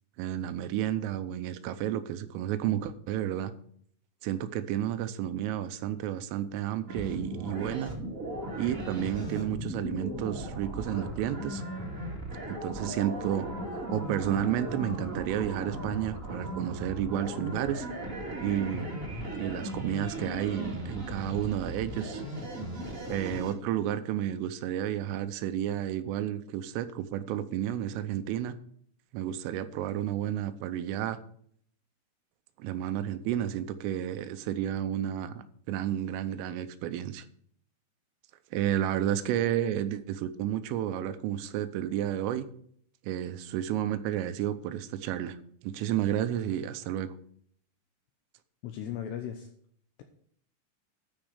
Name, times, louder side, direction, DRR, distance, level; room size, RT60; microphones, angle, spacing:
voice 1, 0.2-3.5 4.2-7.9 8.6-11.6 12.5-13.5 13.7-17.9 18.4-18.9 19.4-22.2 23.1-28.5 29.1-31.2 32.6-37.3 38.5-42.5 43.0-45.4 45.6-47.1, right 11 dB, 90° right, 11 dB, 3.3 m, -31 dB
sound 1, 6.9-23.5, right 1 dB, 50° right, 0.9 m, -37 dB
voice 2, 48.6-49.5, left 9 dB, 80° left, 5 dB, 2.4 m, -36 dB
12.5 x 5.3 x 6.3 m, 0.63 s
omnidirectional pair, 5.7 m